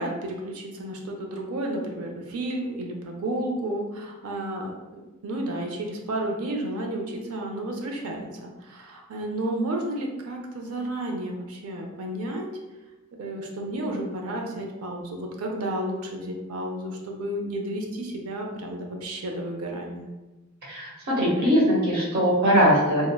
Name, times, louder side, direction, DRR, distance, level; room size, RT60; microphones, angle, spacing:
voice 1, 0.0-12.6 13.2-20.1, right 1 dB, 80° right, 1 dB, 0.5 m, -32 dB
voice 2, 20.6-23.1, equal, 45° right, -5 dB, 0.9 m, -21 dB
3.6 x 2.1 x 2.2 m, 1.1 s
head